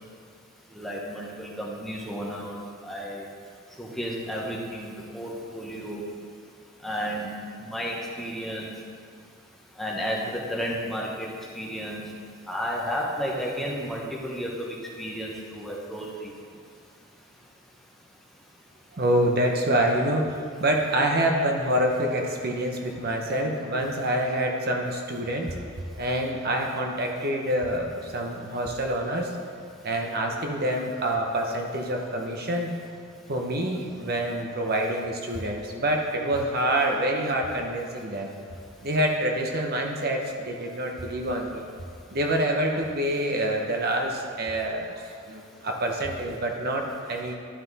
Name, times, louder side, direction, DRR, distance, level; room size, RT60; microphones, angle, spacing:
voice 1, 0.7-3.2 3.8-6.0 6.8-7.3 7.6-8.7 9.8-11.3 11.5-12.0 12.5-16.3, equal, ahead, -4 dB, 1.0 m, -32 dB
voice 2, 18.9-29.3 29.8-32.7 33.3-38.3 38.8-41.6 42.1-45.0 45.3-47.3, right 1 dB, 50° right, 1 dB, 0.8 m, -26 dB
11.0 x 5.7 x 4.0 m, 2.3 s
head